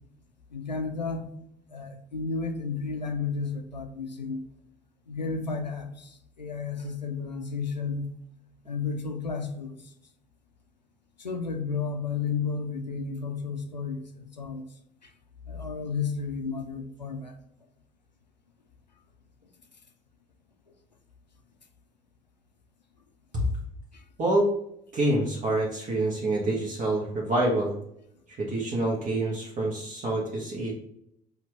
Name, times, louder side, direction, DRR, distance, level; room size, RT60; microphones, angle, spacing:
voice 1, 0.5-1.3 1.7-4.4 5.1-6.1 6.4-8.1 8.7-9.8 11.2-14.6 15.5-17.4, left 5 dB, 90° left, 5 dB, 0.5 m, -32 dB
voice 2, 24.9-27.7 28.4-30.7, right 1 dB, 40° right, -3 dB, 1.2 m, -26 dB
5.9 x 2.5 x 3.2 m, 0.74 s
figure-of-eight pair, 50°, 21 cm